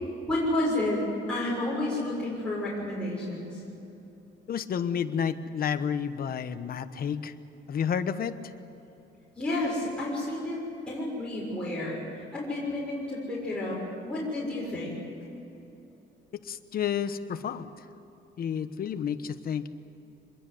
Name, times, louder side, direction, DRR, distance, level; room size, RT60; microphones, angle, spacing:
voice 1, 0.3-3.5 9.4-10.6 10.9-15.0, left 1 dB, 5° left, -7 dB, 6.7 m, -30 dB
voice 2, 4.5-7.3 7.7-8.4 16.4-17.7 18.4-19.7, left 7 dB, 55° left, 10 dB, 1.2 m, -30 dB
25.5 x 21.5 x 7.9 m, 2.9 s
cardioid pair, 150°, 19 cm